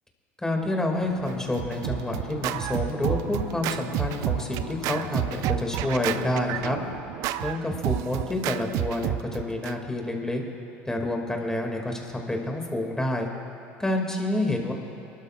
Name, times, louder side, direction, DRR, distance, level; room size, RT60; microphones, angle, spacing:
voice 1, 0.4-6.8 7.4-10.4 10.9-13.3 13.8-14.7, left 1 dB, 10° left, 1 dB, 2.4 m, -28 dB
sound 1, 0.9-7.0, left 8 dB, 90° left, 0.6 m, -41 dB
Scratching (performance technique), 1.3-9.7, right 13 dB, 65° right, 0.4 m, -30 dB
24.5 x 12.5 x 2.5 m, 2.8 s
hypercardioid pair, 80°, 6 cm